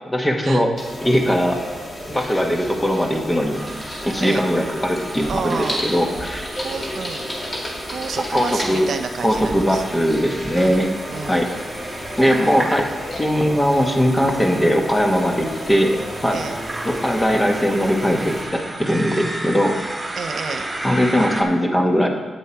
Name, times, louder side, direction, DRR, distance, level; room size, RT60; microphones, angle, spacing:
voice 1, 0.1-0.7 1.0-1.6 2.1-3.6 4.0-6.5 8.3-8.9 9.2-10.9 11.3-11.5 12.2-12.9 13.2-16.4 16.8-19.8 20.8-22.1, equal, 15° left, 2 dB, 1.3 m, -20 dB
sound 1, 0.8-18.4, equal, 35° left, 2.5 m, -33 dB
sound 2, 3.5-21.4, right 1 dB, 15° right, 1.5 m, -33 dB
voice 2, 5.3-5.8 6.6-7.3 7.9-9.9 10.5-10.8 11.1-11.4 12.2-12.7 16.3-16.6 20.2-20.7, right 6 dB, 65° right, 8 dB, 0.5 m, -30 dB
8.8 x 7.6 x 4.5 m, 1.4 s
cardioid pair, 100°, 0 cm